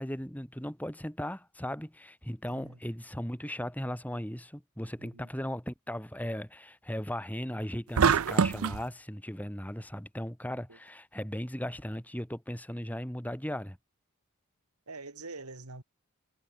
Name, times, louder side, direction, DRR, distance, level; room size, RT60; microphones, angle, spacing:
voice 1, 0.0-13.8, equal, 5° left, 4.1 m, -37 dB
voice 2, 2.5-2.8 5.0-5.3 10.7-10.8 14.9-15.8, right 3 dB, 85° right, 2.8 m, -45 dB
sound 1, 8.0-8.8, right 6 dB, 70° right, 0.5 m, -24 dB
head